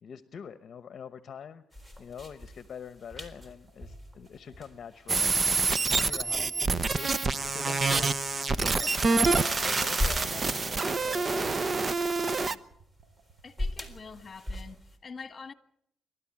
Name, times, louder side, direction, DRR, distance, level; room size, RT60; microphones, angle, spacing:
voice 1, 0.0-1.6 2.0-5.5 5.9-7.2 7.4-8.1 8.5-11.8 12.2-12.7, left 7 dB, 55° left, 1.0 m, -45 dB
sound 1, 1.7-15.0, left 1 dB, 20° right, 4.0 m, -41 dB
sound 2, 3.7-14.6, right 5 dB, 50° right, 5.8 m, -60 dB
sound 3, 5.1-12.5, right 4 dB, 35° right, 0.9 m, -27 dB
voice 2, 7.7-8.0 13.4-15.5, left 5 dB, 35° left, 1.7 m, -45 dB
28.0 x 12.5 x 8.7 m
cardioid pair, 90°, 0 cm